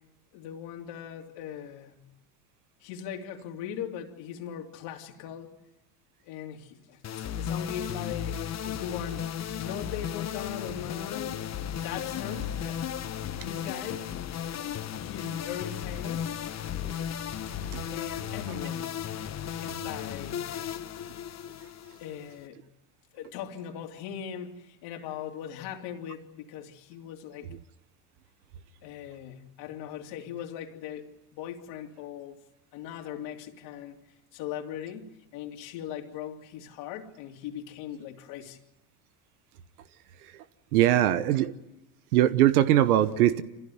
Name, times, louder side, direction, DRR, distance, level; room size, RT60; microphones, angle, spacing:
voice 1, 0.3-2.1 2.8-5.5 6.2-9.3 9.6-11.4 11.7-13.0 13.3-14.1 14.9-16.3 17.9-19.0 19.6-20.7 22.0-22.7 23.1-27.5 28.8-32.4 32.7-34.0 34.3-38.6 40.9-41.2, left 9 dB, 70° left, 3.2 m, -40 dB
sound 1, 7.0-22.4, left 9 dB, 35° left, 1.3 m, -35 dB
voice 2, 40.7-41.5 42.1-43.4, right 13 dB, 85° right, 1.1 m, -21 dB
26.0 x 16.0 x 9.5 m
hypercardioid pair, 85°, 43 cm